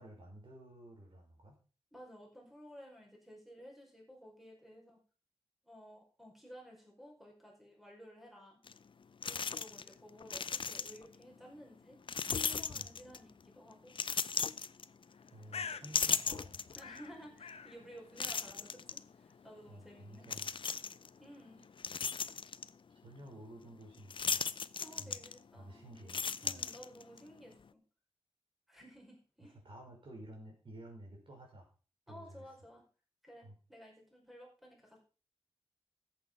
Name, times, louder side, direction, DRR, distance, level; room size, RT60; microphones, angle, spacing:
voice 1, 0.0-1.6 12.7-12.9 15.3-16.6 19.7-20.5 23.0-24.5 25.0-25.2 25.6-26.6 29.4-31.7 32.1-32.5 33.4-33.6, right 1 dB, 55° right, 0 dB, 5.5 m, -52 dB
voice 2, 1.9-5.0 5.6-8.6 9.2-12.0 12.4-13.9 15.5-16.2 16.7-20.6 21.2-21.6 24.8-25.8 26.4-27.8 28.7-29.6 32.1-32.8 33.2-35.0, equal, ahead, -1 dB, 5.2 m, -55 dB
sound 1, 8.7-8.8 9.2-9.9 10.2-11.2 12.1-13.3 13.9-15.3 15.7-17.0 17.5-17.6 18.2-19.0 20.2-21.1 21.6-22.7 24.1-25.6 25.9-27.2, left 5 dB, 50° left, 0.5 m, -36 dB
Bird, 15.1-22.7, left 6 dB, 75° left, 0.9 m, -51 dB
14.0 x 8.6 x 5.4 m, 0.36 s
wide cardioid pair, 125°, 11 cm